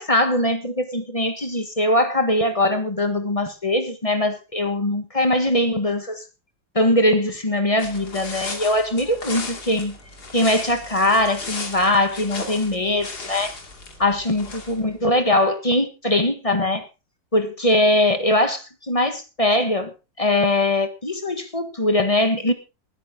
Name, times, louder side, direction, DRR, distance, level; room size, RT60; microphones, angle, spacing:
voice 1, 0.0-6.2 6.7-10.0 10.3-13.6 14.0-16.8 17.3-19.9 20.2-22.5, left 1 dB, 20° left, 1.3 m, -21 dB
sound 1, 7.8-14.9, left 3 dB, 55° left, 3.2 m, -35 dB
20.0 x 10.0 x 3.7 m
omnidirectional pair, 2.0 m